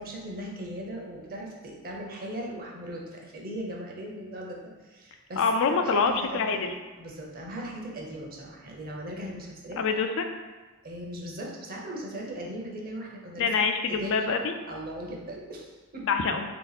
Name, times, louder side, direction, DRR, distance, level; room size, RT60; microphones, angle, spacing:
voice 1, 0.0-6.6 7.0-9.8 10.8-13.5 13.9-14.3 14.7-16.1, right 1 dB, 45° right, -1 dB, 0.7 m, -38 dB
voice 2, 5.4-6.7 9.8-10.2 13.4-14.5 16.0-16.4, left 5 dB, 60° left, 6 dB, 0.4 m, -25 dB
3.3 x 2.9 x 4.0 m, 1.3 s
head